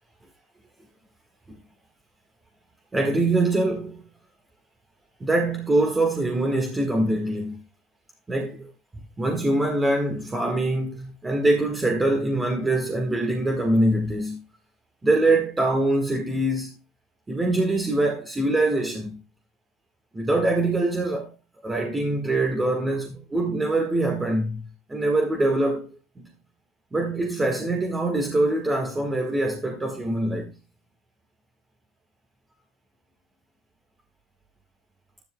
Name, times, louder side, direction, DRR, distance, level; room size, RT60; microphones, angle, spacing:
voice 1, 2.9-4.0 5.2-7.6 8.3-8.7 9.2-14.4 15.0-16.8 17.3-19.2 20.1-21.3 21.6-25.9 26.2-26.3 26.9-30.5, right 2 dB, 15° right, 1.5 m, -24 dB
12.0 x 10.5 x 2.2 m
supercardioid pair, 115°, 0 cm